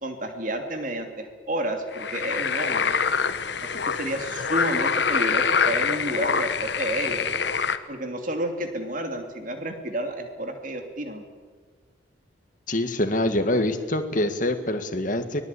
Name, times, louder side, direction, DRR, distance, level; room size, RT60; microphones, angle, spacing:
voice 1, 0.0-3.0 3.6-7.3 7.9-11.2, right 1 dB, 40° right, 5 dB, 2.7 m, -31 dB
sound 1, 1.9-7.8, left 6 dB, 60° left, 1.1 m, -25 dB
voice 2, 12.7-15.4, left 1 dB, 45° left, 7 dB, 1.8 m, -25 dB
24.0 x 19.0 x 8.4 m, 1.5 s
head